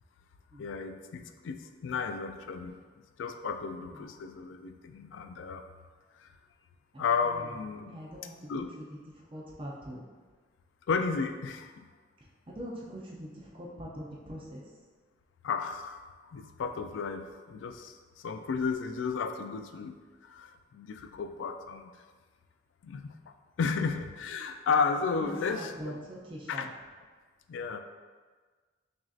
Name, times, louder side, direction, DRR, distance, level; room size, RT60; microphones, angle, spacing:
voice 1, 0.6-2.8 3.2-5.6 6.2-6.3 7.0-8.0 8.5-8.7 10.9-11.9 15.4-16.0 16.3-20.0 20.2-21.9 22.8-23.1 23.6-26.0 26.5-26.7 27.5-27.8, left 5 dB, 75° left, 7 dB, 0.3 m, -33 dB
voice 2, 7.8-8.6 9.3-10.0 12.5-14.6 25.2-26.7, equal, 30° right, -5 dB, 0.6 m, -42 dB
6.0 x 2.6 x 2.4 m, 1.4 s
head